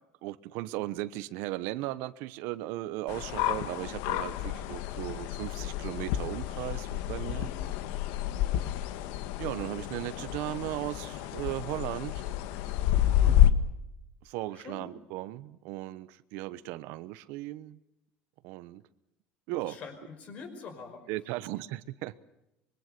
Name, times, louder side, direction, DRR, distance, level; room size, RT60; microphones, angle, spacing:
voice 1, 0.2-7.5 9.4-12.3 14.2-17.8 18.4-18.8 19.5-19.8 21.1-22.2, right 17 dB, 70° right, 16 dB, 1.0 m, -37 dB
sound 1, 3.1-13.5, left 12 dB, 80° left, 1.5 m, -29 dB
voice 2, 7.3-7.7 13.1-13.4 14.6-14.9 19.7-21.1, left 5 dB, 35° left, 7 dB, 5.3 m, -45 dB
25.5 x 23.5 x 6.8 m, 0.88 s
cardioid pair, 170°, 4 cm